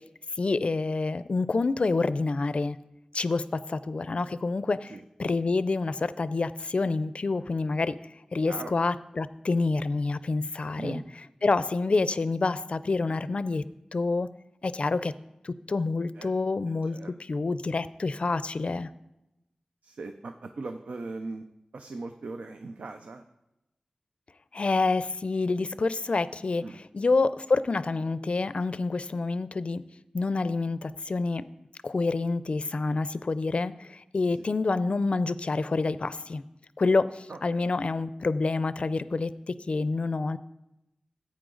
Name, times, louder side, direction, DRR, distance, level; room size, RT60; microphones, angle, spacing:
voice 1, 0.4-2.8 3.1-8.0 8.3-11.0 11.4-13.6 13.9-14.3 14.6-15.1 15.4-18.9 24.5-29.8 30.1-31.4 31.8-36.4 36.8-40.4, left 3 dB, 60° left, 15 dB, 0.4 m, -27 dB
voice 2, 16.7-17.1 19.8-21.4 21.7-23.2 26.6-26.8 37.3-37.6, right 3 dB, 85° right, 6 dB, 0.5 m, -39 dB
14.5 x 8.4 x 3.9 m, 0.91 s
wide cardioid pair, 60°, 2 cm